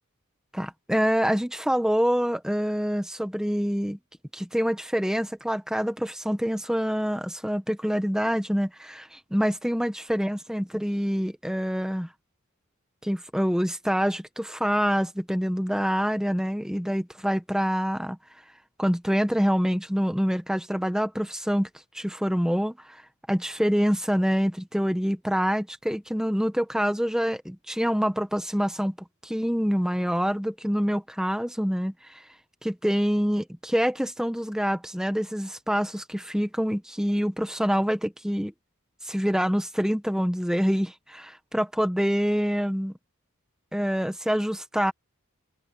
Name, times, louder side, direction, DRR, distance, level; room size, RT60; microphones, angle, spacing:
voice 1, 0.5-4.0 4.3-12.1 13.0-18.2 18.8-21.7 21.9-23.0 23.3-28.9 29.2-32.2 32.6-38.5 39.0-42.9 43.7-44.9, equal, 5° right, 1.1 m, -26 dB
open air
head